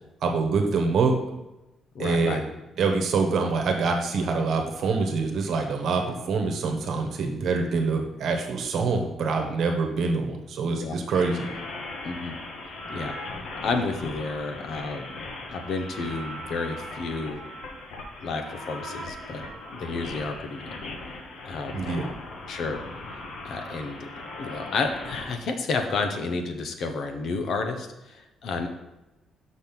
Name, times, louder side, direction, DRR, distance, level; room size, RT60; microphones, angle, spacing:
voice 1, 0.2-1.1 2.0-2.4 2.8-11.5 21.7-22.0, right 4 dB, 55° right, 4 dB, 1.2 m, -25 dB
voice 2, 1.9-2.4 10.8-11.0 12.0-12.4 12.9-13.1 13.6-15.2 15.5-17.4 18.2-20.8 21.5-21.9 22.5-22.8 23.4-24.1 24.4-28.7, left 4 dB, 55° left, 6 dB, 0.9 m, -31 dB
sound 1, 11.1-25.4, left 2 dB, 70° left, 1.3 m, -38 dB
6.2 x 5.4 x 6.0 m, 0.98 s
cardioid pair, 175°, 0 cm